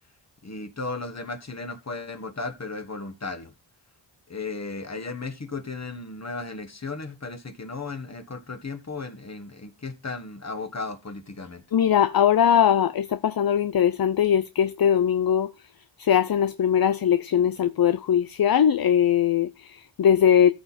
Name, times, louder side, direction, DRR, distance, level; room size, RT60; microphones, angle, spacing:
voice 1, 0.4-3.5 4.3-11.6, left 3 dB, 35° left, 1.7 m, -35 dB
voice 2, 11.7-15.5 16.0-20.5, left 9 dB, 50° left, 0.6 m, -21 dB
14.0 x 5.6 x 4.2 m
cardioid pair, 65°, 47 cm